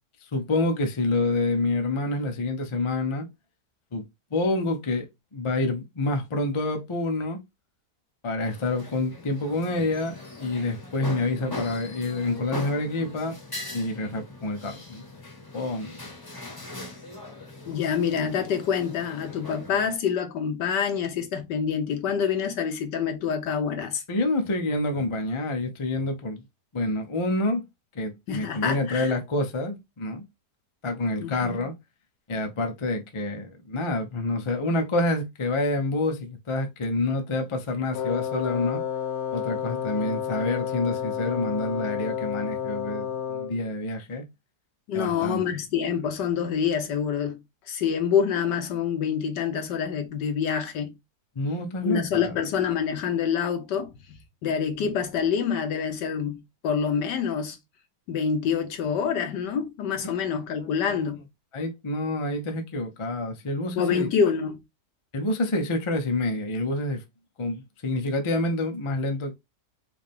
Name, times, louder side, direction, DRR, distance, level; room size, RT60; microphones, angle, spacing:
voice 1, 0.3-3.3 3.9-4.0 4.3-7.4 8.2-13.3 13.7-15.0 15.5-16.0 24.1-26.4 26.7-27.6 27.9-30.2 30.8-31.7 32.3-38.8 39.3-44.3 44.9-45.4 51.4-52.3 60.9-61.0 61.5-64.1 65.1-67.0 67.4-69.3, left 2 dB, 50° left, 0.3 m, -27 dB
sound 1, 8.5-20.0, left 2 dB, 20° left, 0.8 m, -40 dB
voice 2, 17.7-24.0 28.3-29.1 31.2-31.6 44.9-47.4 47.7-50.9 51.8-53.9 54.4-57.6 58.1-61.2 63.8-64.6, left 7 dB, 90° left, 1.6 m, -26 dB
Wind instrument woodwind instrument, 37.9-43.7, left 8 dB, 70° left, 0.9 m, -30 dB
4.6 x 2.5 x 3.5 m
omnidirectional pair, 1.8 m